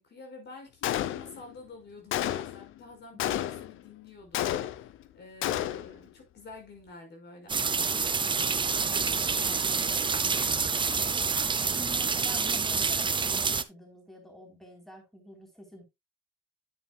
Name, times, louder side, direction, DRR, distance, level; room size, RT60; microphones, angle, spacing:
voice 1, 0.0-4.9 5.1-10.7, left 3 dB, 60° left, 5.3 m, -49 dB
Gunshot gunfire, 0.8-1.5 2.1-2.7 3.2-3.8 4.3-5.0 5.4-6.0, left 12 dB, 85° left, 0.7 m, -31 dB
voice 2, 3.3-3.6 8.8-9.0 11.5-15.8, equal, ahead, 3.6 m, -47 dB
sound 1, 7.5-13.6, right 5 dB, 25° right, 0.6 m, -27 dB
9.5 x 9.0 x 2.3 m
cardioid pair, 90°, 20 cm